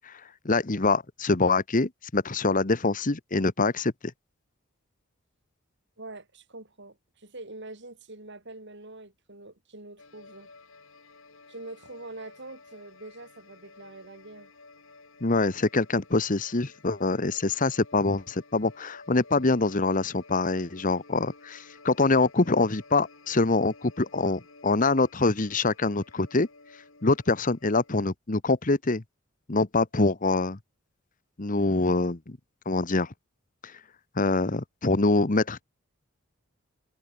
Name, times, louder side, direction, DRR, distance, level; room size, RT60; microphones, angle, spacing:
voice 1, 0.4-3.9 15.2-26.5 27.0-29.0 29.5-30.6 31.4-32.4 32.7-33.1 34.2-35.6, left 3 dB, 35° left, 1.1 m, -25 dB
voice 2, 6.0-10.5 11.5-14.5, right 2 dB, 55° right, 4.3 m, -44 dB
sound 1, 10.0-28.0, left 3 dB, 60° left, 3.7 m, -53 dB
head